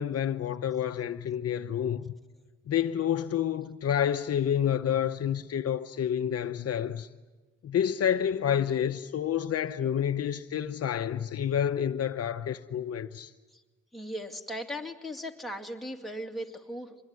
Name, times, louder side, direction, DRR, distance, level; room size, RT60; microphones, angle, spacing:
voice 1, 0.0-2.1 2.7-7.1 7.6-13.3, left 9 dB, 55° left, 0.8 m, -29 dB
voice 2, 13.9-17.0, equal, ahead, 2.4 m, -38 dB
24.5 x 22.0 x 9.7 m
cardioid pair, 90°, 30 cm